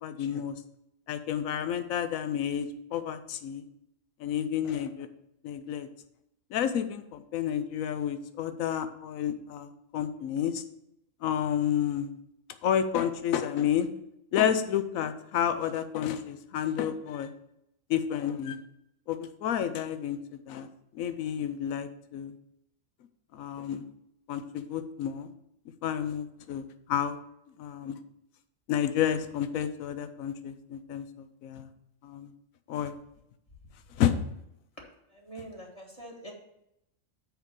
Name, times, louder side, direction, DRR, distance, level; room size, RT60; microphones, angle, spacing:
voice 1, 0.0-0.6 1.1-3.6 4.2-5.1 5.4-5.9 6.5-10.6 11.2-12.1 12.6-13.9 14.3-17.3 17.9-18.6 19.1-20.2 20.5-20.7 20.9-22.3 23.3-23.8 24.3-25.3 25.8-27.2 27.6-28.0 28.7-31.1 31.4-31.7 32.0-32.3 32.7-32.9 34.0-34.2, left 9 dB, 85° left, 10 dB, 1.1 m, -30 dB
voice 2, 35.2-36.3, right 1 dB, 30° left, -1 dB, 1.4 m, -44 dB
6.3 x 5.0 x 6.6 m, 0.81 s
omnidirectional pair, 1.4 m